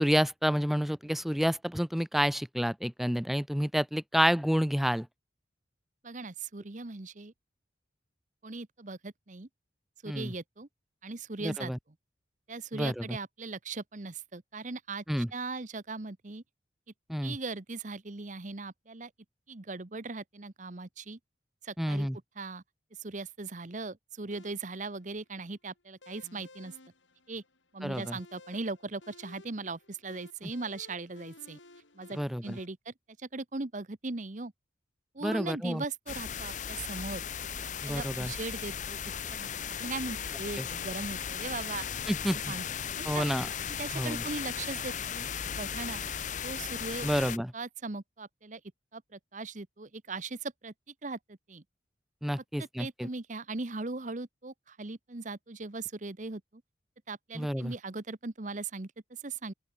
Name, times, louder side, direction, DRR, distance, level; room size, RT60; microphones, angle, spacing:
voice 1, 0.0-5.1 10.1-10.3 11.4-11.8 12.7-13.0 15.1-15.3 17.1-17.4 21.8-22.2 27.8-28.2 32.2-32.6 35.2-35.8 37.8-38.3 40.6-40.7 42.1-42.4 43.0-43.5 43.9-44.2 47.0-47.5 52.2-53.1 57.4-57.7, equal, ahead, 0.4 m, -29 dB
voice 2, 6.0-7.3 8.4-9.5 10.0-10.7 11.0-11.7 12.5-16.4 17.2-19.1 19.5-21.2 21.6-22.1 22.3-22.6 23.0-26.7 27.3-27.4 27.7-31.6 31.9-32.9 33.2-34.5 35.1-37.2 37.8-39.5 39.8-41.8 42.5-42.7 43.0-43.3 43.8-46.0 46.4-47.1 47.5-48.6 48.9-50.7 51.0-51.6 52.6-56.6 57.1-59.5, right 3 dB, 40° right, 1.0 m, -39 dB
sound 1, 24.3-32.7, left 2 dB, 85° left, 5.1 m, -56 dB
sound 2, 36.1-47.4, left 8 dB, 40° left, 0.7 m, -36 dB
open air
head